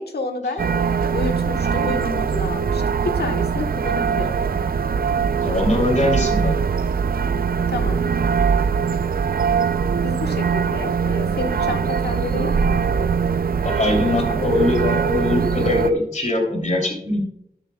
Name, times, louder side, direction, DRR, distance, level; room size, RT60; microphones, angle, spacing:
voice 1, 0.0-4.4 7.7-8.0 10.0-12.9 14.2-14.4, left 3 dB, 90° left, 5 dB, 1.2 m, -30 dB
sound 1, 0.6-15.9, right 6 dB, 65° right, 0.4 m, -22 dB
voice 2, 5.4-6.5 11.6-11.7 13.6-17.2, left 2 dB, 50° left, 1 dB, 2.9 m, -22 dB
13.5 x 11.0 x 2.3 m, 0.77 s
wide cardioid pair, 95°, 16 cm